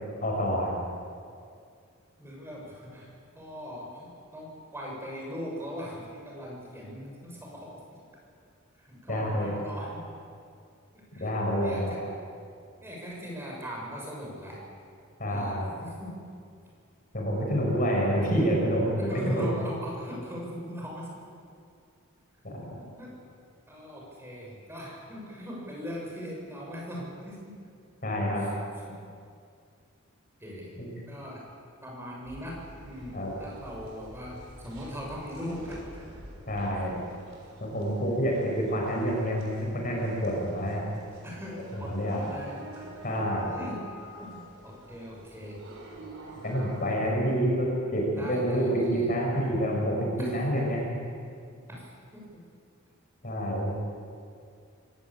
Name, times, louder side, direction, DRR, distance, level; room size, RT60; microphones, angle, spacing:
voice 1, 0.2-0.8 9.1-9.7 11.2-11.9 15.2-15.7 17.1-19.4 22.4-22.6 28.0-28.5 30.8-30.9 33.1-33.3 36.5-37.0 37.6-40.8 41.7-42.2 43.0-43.6 46.4-50.9 53.2-53.7, equal, 40° left, -1 dB, 6.2 m, -28 dB
voice 2, 2.2-3.1 3.3-7.8 8.8-10.1 10.9-11.3 11.6-12.0 12.8-14.6 15.3-16.2 19.0-21.1 22.7-23.1 23.7-27.6 28.4-28.5 30.4-30.8 31.1-31.4 31.8-36.0 37.9-38.3 41.2-42.9 43.5-43.8 44.2-45.6 48.1-49.1 50.2-50.3 50.6-50.7 51.7-52.4, equal, 10° right, -3 dB, 7.0 m, -40 dB
sound 1, 32.2-46.9, right 1 dB, 65° right, 6.4 m, -48 dB
25.0 x 16.5 x 8.8 m, 2.3 s
head